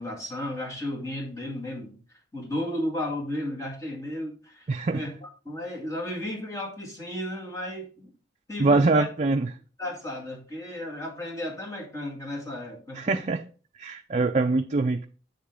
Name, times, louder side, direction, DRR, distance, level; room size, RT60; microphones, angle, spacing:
voice 1, 0.0-2.0 2.3-8.1 8.5-9.1 9.8-13.2, left 1 dB, 20° left, 2.3 m, -34 dB
voice 2, 4.7-5.0 8.6-9.5 13.0-13.4 13.8-15.1, right 3 dB, 40° right, 0.5 m, -23 dB
7.5 x 7.1 x 3.7 m
head